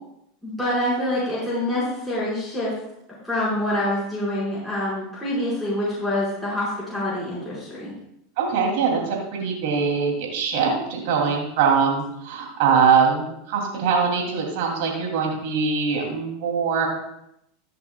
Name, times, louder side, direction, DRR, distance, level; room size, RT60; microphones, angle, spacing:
voice 1, 0.4-2.7 3.2-7.9, left 1 dB, 5° left, -9 dB, 4.6 m, -26 dB
voice 2, 8.4-16.9, right 6 dB, 70° right, 0 dB, 2.5 m, -22 dB
14.5 x 10.5 x 2.2 m, 0.79 s
hypercardioid pair, 105°, 0 cm